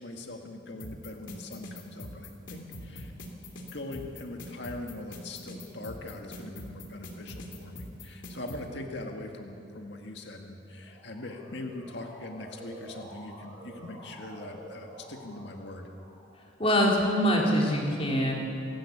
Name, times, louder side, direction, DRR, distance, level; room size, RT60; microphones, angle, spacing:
voice 1, 0.0-3.1 3.6-15.9, left 2 dB, 65° left, 3 dB, 1.9 m, -41 dB
sound 1, 0.8-8.6, left 1 dB, 90° left, 3.0 m, -42 dB
Motor vehicle (road) / Siren, 10.6-16.5, right 1 dB, 15° right, 5.7 m, -49 dB
voice 2, 16.6-18.3, equal, 30° left, -2 dB, 3.8 m, -24 dB
27.0 x 11.5 x 8.6 m, 2.7 s
head